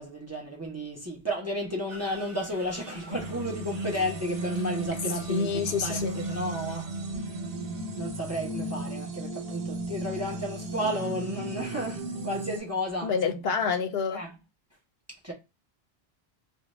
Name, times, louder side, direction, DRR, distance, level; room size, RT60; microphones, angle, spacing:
voice 1, 0.0-7.2 8.0-13.5 14.1-14.3 15.1-15.3, equal, 15° right, 0.7 m, -33 dB
sound 1, 1.9-7.2, right 2 dB, 45° right, 1.3 m, -49 dB
sound 2, 3.1-12.6, right 1 dB, 70° right, 1.0 m, -35 dB
voice 2, 5.3-6.2 13.0-14.2, left 6 dB, 75° left, 0.8 m, -28 dB
2.5 x 2.2 x 2.9 m
omnidirectional pair, 1.1 m